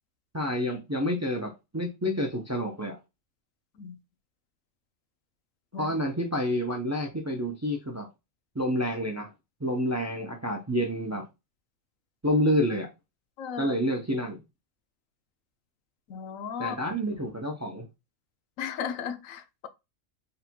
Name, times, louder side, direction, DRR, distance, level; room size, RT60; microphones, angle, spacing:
voice 1, 0.3-3.0 5.7-8.1 8.5-9.3 9.6-11.2 12.2-12.9 13.6-14.4 16.6-17.9, equal, 20° right, 0.4 m, -28 dB
voice 2, 13.4-13.7 16.1-16.8 18.6-19.7, left 8 dB, 90° left, 1.1 m, -35 dB
4.3 x 4.0 x 2.2 m
omnidirectional pair, 1.3 m